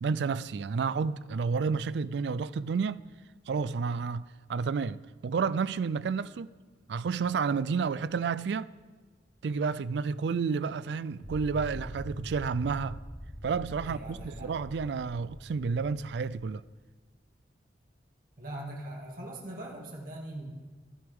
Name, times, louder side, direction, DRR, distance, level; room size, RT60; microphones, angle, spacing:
voice 1, 0.0-3.0 3.5-4.2 4.5-6.5 6.9-8.7 9.4-13.0 13.4-16.6, right 5 dB, 70° right, 0.4 m, -30 dB
sound 1, 11.2-16.4, equal, ahead, 4.8 m, -43 dB
voice 2, 13.8-14.5 18.4-20.5, right 1 dB, 50° right, 2.3 m, -41 dB
14.0 x 12.5 x 3.5 m
head